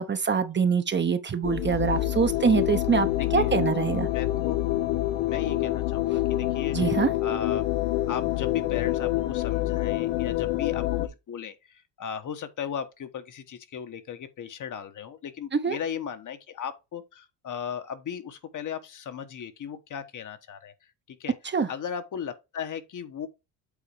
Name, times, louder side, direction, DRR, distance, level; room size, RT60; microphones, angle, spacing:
voice 1, 0.0-4.1 6.7-7.1 15.5-15.8 21.5-21.7, right 6 dB, 25° right, 0.9 m, -24 dB
sound 1, 1.4-11.1, left 15 dB, 80° left, 1.1 m, -27 dB
voice 2, 3.2-3.5 4.1-4.6 5.3-6.9 7.2-7.6 8.1-20.7 21.1-21.3 21.7-23.3, left 8 dB, 45° left, 1.3 m, -36 dB
8.5 x 3.8 x 4.9 m
cardioid pair, 95°, 42 cm